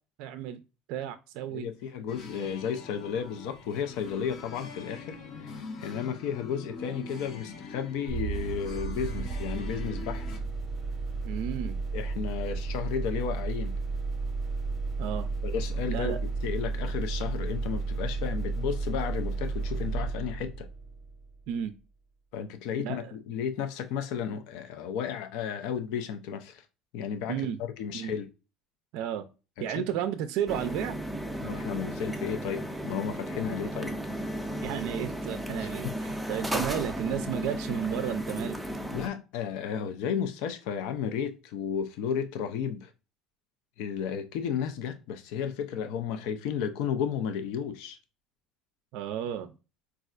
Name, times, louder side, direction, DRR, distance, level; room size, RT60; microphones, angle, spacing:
voice 1, 0.2-0.6 0.9-1.7 11.2-11.8 15.0-15.3 15.9-16.2 21.5-21.7 22.8-23.1 27.3-27.6 27.9-28.1 28.9-29.2 29.6-31.0 34.6-38.6 48.9-49.5, right 10 dB, 70° right, 0.3 m, -33 dB
voice 2, 1.5-10.3 11.9-13.8 15.4-16.2 16.4-20.7 22.3-26.6 26.9-28.3 29.6-29.8 31.4-33.9 35.6-35.9 38.9-42.9 43.8-48.0, left 7 dB, 75° left, 0.4 m, -33 dB
sound 1, 2.1-10.4, left 4 dB, 55° left, 0.8 m, -43 dB
sound 2, 8.1-21.6, right 4 dB, 40° right, 0.7 m, -33 dB
sound 3, 30.5-39.1, equal, 5° right, 0.5 m, -34 dB
4.2 x 2.3 x 2.4 m
supercardioid pair, 105°, 0 cm